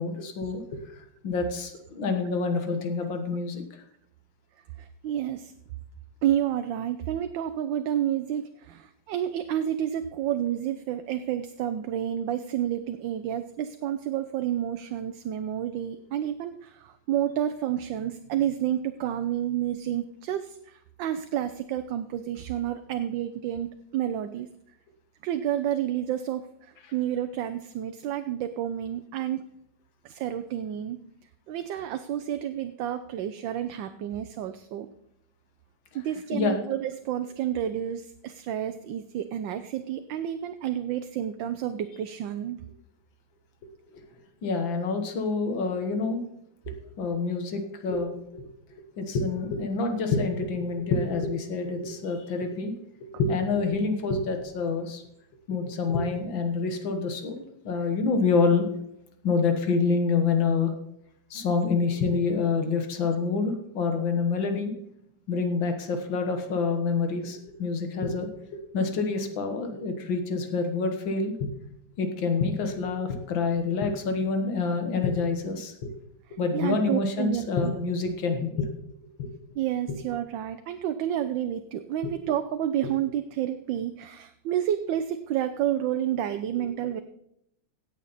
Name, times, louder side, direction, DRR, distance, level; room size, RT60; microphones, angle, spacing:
voice 1, 0.0-3.8 36.3-36.7 43.9-44.0 44.4-46.2 46.7-48.5 49.0-52.7 53.2-55.0 55.5-58.7 59.2-60.7 61.3-64.7 65.3-71.5 72.0-75.9 76.4-78.7 79.2-79.3 86.6-86.7, left 4 dB, 80° left, 6 dB, 2.2 m, -27 dB
voice 2, 4.8-5.5 6.2-24.5 25.2-29.4 30.0-31.0 31.5-34.9 35.9-42.6 76.5-77.8 79.5-87.0, right 11 dB, 80° right, 9 dB, 1.4 m, -30 dB
17.0 x 7.5 x 4.1 m, 0.77 s
omnidirectional pair, 2.1 m